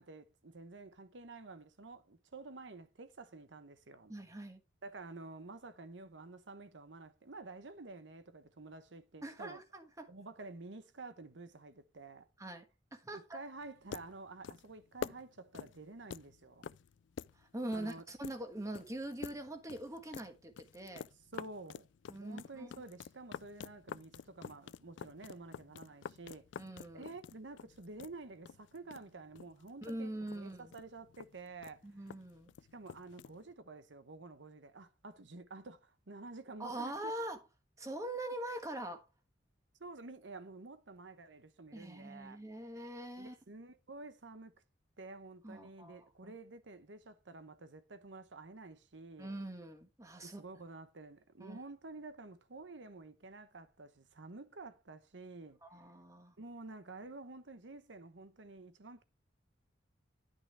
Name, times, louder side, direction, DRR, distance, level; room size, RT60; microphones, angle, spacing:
voice 1, 0.0-4.1 4.8-9.6 10.1-12.3 13.1-16.7 17.7-18.0 21.3-21.9 22.1-26.5 26.9-32.0 32.7-37.1 39.8-42.4 43.2-44.5 45.0-49.4 50.2-55.6 56.4-59.0, right 3 dB, 85° right, 1.0 m, -50 dB
voice 2, 4.1-4.6 9.2-10.1 12.4-12.7 12.9-13.4 17.4-21.1 22.1-22.7 26.6-27.1 29.8-30.7 31.8-32.5 36.6-37.4 37.8-39.0 41.7-43.3 45.4-46.4 49.2-50.4 51.4-51.6 55.6-56.4, right 1 dB, 20° right, 1.4 m, -43 dB
sound 1, 13.6-33.5, left 7 dB, 80° left, 0.3 m, -49 dB
11.0 x 6.4 x 3.4 m
head